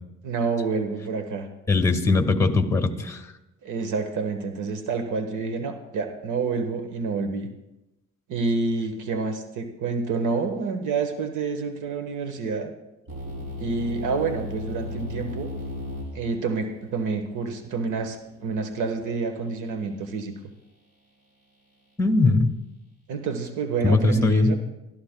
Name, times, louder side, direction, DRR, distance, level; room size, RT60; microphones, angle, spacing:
voice 1, 0.2-1.5 3.6-7.5 8.3-12.7 13.6-15.5 16.1-20.4 23.1-24.6, right 4 dB, 80° right, 6 dB, 1.3 m, -28 dB
voice 2, 1.7-3.2 22.0-22.5 23.8-24.5, left 3 dB, 10° left, 6 dB, 1.6 m, -20 dB
sound 1, 13.1-19.0, left 2 dB, 55° right, 5.7 m, -37 dB
23.0 x 13.5 x 2.2 m, 0.96 s
cardioid pair, 90°, 30 cm